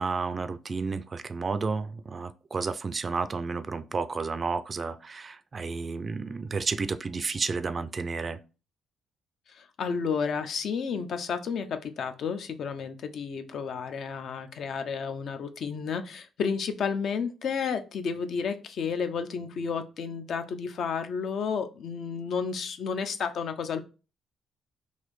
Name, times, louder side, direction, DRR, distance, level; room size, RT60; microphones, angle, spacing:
voice 1, 0.0-8.4, right 4 dB, 35° right, 0.3 m, -31 dB
voice 2, 9.5-23.8, left 6 dB, 65° left, 0.4 m, -31 dB
4.0 x 2.6 x 3.1 m
cardioid pair, 90°, 0 cm